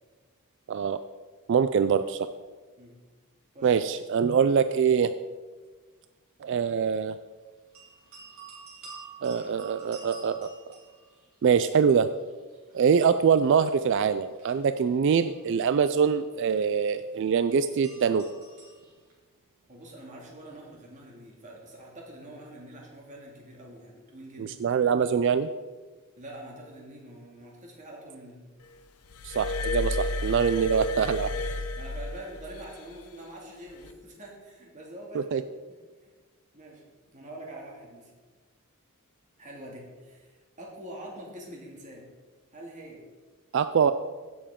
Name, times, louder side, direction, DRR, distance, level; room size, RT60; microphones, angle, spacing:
voice 1, 1.5-2.3 3.6-5.1 6.4-7.2 9.2-10.5 11.4-12.1 12.7-18.2 24.4-25.5 29.2-31.3 35.1-35.4 43.5-43.9, right 6 dB, 55° right, 11 dB, 0.3 m, -24 dB
sound 1, 7.7-11.7 12.0-19.1, right 4 dB, 75° right, 3.4 m, -50 dB
voice 2, 19.7-24.6 26.2-28.4 31.8-35.5 36.0-36.1 36.5-36.8 37.1-38.1 39.4-42.1 42.5-43.0, right 1 dB, 35° right, -1 dB, 2.2 m, -45 dB
Glass, 29.1-32.7 33.7-33.9, left 2 dB, 90° left, 0.7 m, -31 dB
16.0 x 7.0 x 3.6 m, 1.4 s
head